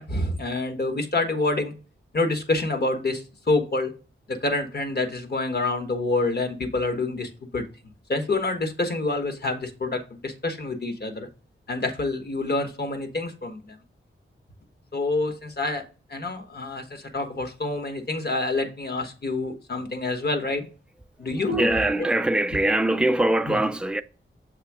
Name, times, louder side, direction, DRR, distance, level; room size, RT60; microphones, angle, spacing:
voice 1, 0.0-1.7 2.1-3.9 4.3-7.6 8.1-11.3 11.7-13.8 14.9-15.8 16.1-20.7 21.2-21.7 23.5-23.6, left 2 dB, 50° left, 1.2 m, -27 dB
voice 2, 21.2-24.0, right 1 dB, 5° right, 0.4 m, -23 dB
6.7 x 3.5 x 4.7 m
wide cardioid pair, 120°, 21 cm